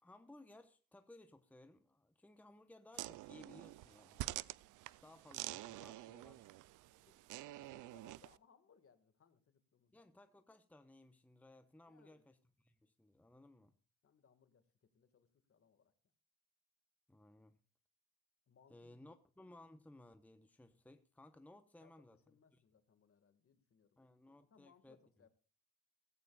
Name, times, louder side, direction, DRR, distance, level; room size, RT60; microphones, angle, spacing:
voice 1, 0.0-4.4 5.0-6.4 9.9-13.7 17.1-17.6 18.7-22.2 24.0-25.0, left 1 dB, 5° left, 1.0 m, -61 dB
sound 1, 2.9-8.4, right 17 dB, 85° right, 0.5 m, -48 dB
voice 2, 7.0-10.0 11.9-12.3 14.0-15.9 18.5-19.1 21.8-24.0 24.5-25.3, left 6 dB, 45° left, 2.0 m, -70 dB
16.0 x 15.5 x 2.4 m
cardioid pair, 90°, 30 cm